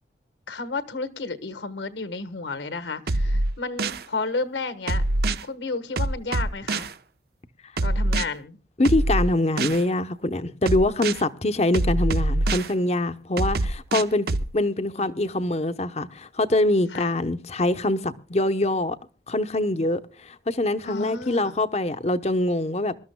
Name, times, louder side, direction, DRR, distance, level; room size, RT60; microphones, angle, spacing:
voice 1, 0.5-5.0 5.4-6.9 7.8-8.6 14.8-15.3 16.9-17.1 20.8-21.5, left 3 dB, 75° left, 1.4 m, -32 dB
sound 1, 3.1-4.0 4.9-5.4 6.0-6.9 7.8-8.2 8.8-9.8 10.7-11.2 11.7-12.7 13.4-14.5, right 2 dB, 55° right, 0.7 m, -24 dB
voice 2, 8.8-14.3 14.5-19.0 19.3-22.9, left 1 dB, 35° left, 0.8 m, -24 dB
26.0 x 13.0 x 2.2 m
head